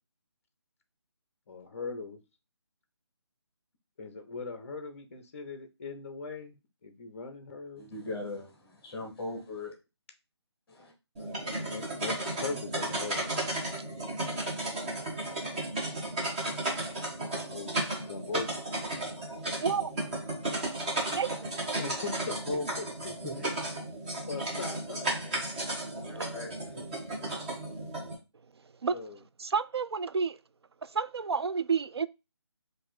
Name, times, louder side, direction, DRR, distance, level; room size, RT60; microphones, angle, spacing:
voice 1, 1.5-2.2 4.0-6.6 6.8-7.9 11.2-13.6 17.5-18.7 21.8-23.5 24.1-25.4 27.6-27.9 28.9-29.2, left 4 dB, 30° left, 0.6 m, -40 dB
voice 2, 7.8-9.7 10.7-10.9 22.2-22.7 23.0-23.4 26.1-26.9, left 2 dB, 10° left, 1.3 m, -38 dB
sound 1, 11.2-28.2, right 1 dB, 20° right, 1.1 m, -34 dB
voice 3, 19.6-19.9 21.2-21.3 26.1-26.3 28.8-29.0 29.4-30.4 30.8-32.1, right 5 dB, 65° right, 0.4 m, -30 dB
4.1 x 2.6 x 4.1 m
figure-of-eight pair, 150°, 15 cm